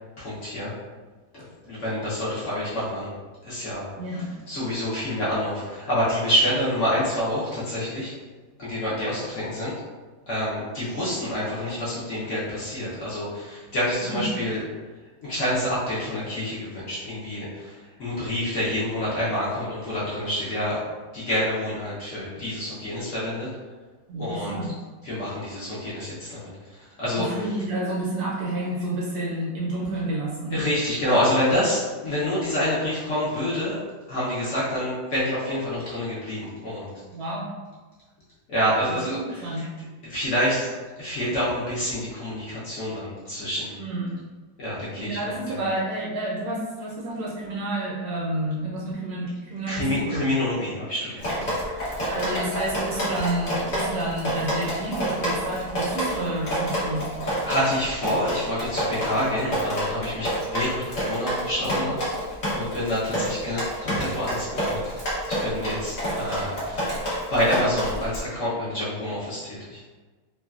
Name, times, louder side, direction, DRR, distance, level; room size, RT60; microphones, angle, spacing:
voice 1, 0.2-0.7 1.3-3.1 3.4-3.8 4.5-8.1 8.6-9.7 10.3-14.6 15.2-20.8 21.1-23.5 24.2-24.6 25.0-27.4 30.5-33.8 34.1-36.9 38.5-39.7 40.1-40.7 41.0-43.8 44.6-45.6 49.7-51.5 57.4-62.0 62.5-64.8 65.3-69.8, equal, 65° left, -9 dB, 0.7 m, -27 dB
voice 2, 4.0-4.3 14.0-14.3 24.1-24.7 27.2-30.6 37.1-37.5 39.1-39.7 43.8-44.2 45.0-50.4 52.1-57.1, right 1 dB, 70° right, -5 dB, 0.9 m, -30 dB
Drip, 51.2-68.2, equal, 80° left, 0.3 m, -28 dB
3.1 x 2.2 x 2.3 m, 1.3 s
omnidirectional pair, 2.0 m